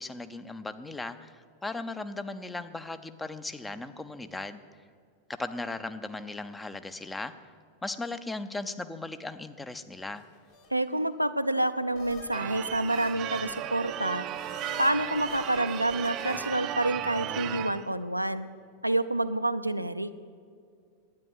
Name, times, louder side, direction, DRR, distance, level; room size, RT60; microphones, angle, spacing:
voice 1, 0.0-4.6 5.4-7.3 7.8-10.2, left 2 dB, 10° left, 11 dB, 0.6 m, -37 dB
sound 1, 10.1-11.2 11.9-16.8, left 5 dB, 50° left, 2.1 m, -49 dB
voice 2, 10.7-14.3 14.8-18.5 18.8-20.1, right 1 dB, 90° right, 10 dB, 0.4 m, -28 dB
Church bell / Car / Alarm, 12.3-17.9, right 12 dB, 35° right, 0.5 m, -35 dB
10.5 x 9.3 x 8.0 m, 2.3 s
figure-of-eight pair, 90°, 0 cm